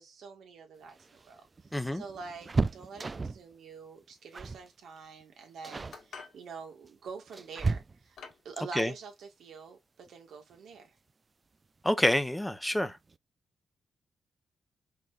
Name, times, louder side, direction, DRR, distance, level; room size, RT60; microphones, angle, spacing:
voice 1, 0.0-1.4 1.9-8.2 8.5-10.9, right 5 dB, 80° right, 1.7 m, -46 dB
sound 1, 0.8-3.5 4.3-4.7 5.0-5.2 5.6-6.0 6.8-8.3 10.1-10.2 10.5-10.6 11.8-12.2 12.6-12.7 13.0-13.2, right 3 dB, 35° right, 0.3 m, -34 dB
voice 2, 1.7-2.0 8.7-8.9 11.8-13.0, left 1 dB, 5° left, 0.8 m, -27 dB
sound 2, 5.9-6.4 7.4-7.5 8.2-8.5, left 5 dB, 75° left, 1.9 m, -47 dB
4.8 x 3.9 x 2.5 m
cardioid pair, 80°, 0 cm